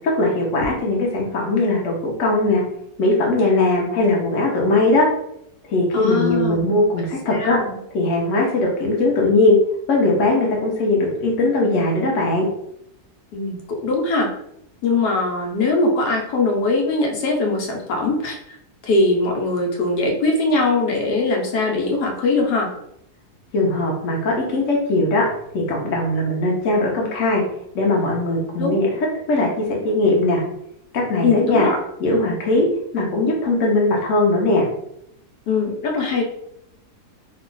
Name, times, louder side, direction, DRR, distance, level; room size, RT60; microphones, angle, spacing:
voice 1, 0.1-2.6 3.0-5.1 5.7-7.6 7.9-9.6 9.9-12.5 23.5-25.3 25.5-27.4 27.7-28.9 29.3-30.4 30.9-31.7 32.0-32.7 32.9-34.7, left 2 dB, 60° left, -2 dB, 1.0 m, -19 dB
voice 2, 5.9-6.6 7.3-7.8 13.3-14.3 14.8-18.4 18.8-22.7 28.6-28.8 31.2-31.8 35.5-36.2, left 3 dB, 90° left, 0 dB, 1.3 m, -21 dB
2.9 x 2.4 x 3.8 m, 0.75 s
omnidirectional pair, 1.7 m